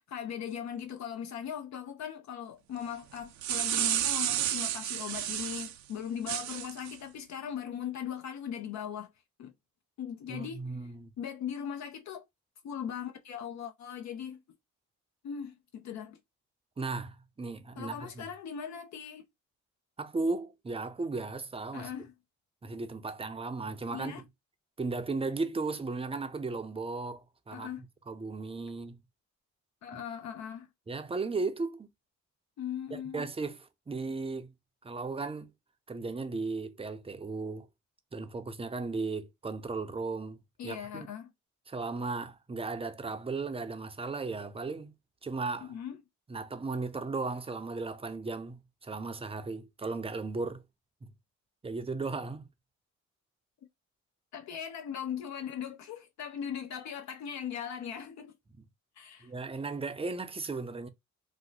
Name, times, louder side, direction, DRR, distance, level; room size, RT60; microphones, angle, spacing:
voice 1, 0.0-9.1 9.4-9.5 10.0-10.6 11.2-12.3 12.6-14.4 15.2-16.2 17.8-19.2 21.7-22.1 23.9-24.2 27.5-27.8 29.8-30.7 32.6-33.3 40.6-41.3 45.6-46.0 54.3-58.3 59.0-59.3, left 8 dB, 65° left, 0.6 m, -39 dB
sound 1, 3.2-5.7 6.3-6.9, right 12 dB, 70° right, 0.5 m, -31 dB
voice 2, 10.3-11.1 16.8-18.2 20.0-21.9 22.6-24.1 24.8-27.7 28.1-29.0 30.9-31.9 32.9-33.6 33.9-34.5 34.8-35.5 35.9-37.7 38.1-41.1 41.7-44.9 45.2-45.7 46.3-50.6 51.0-51.1 51.6-52.4 58.6-58.7 59.2-60.9, right 3 dB, 20° right, 0.5 m, -36 dB
2.8 x 2.0 x 3.8 m
cardioid pair, 90°, 30 cm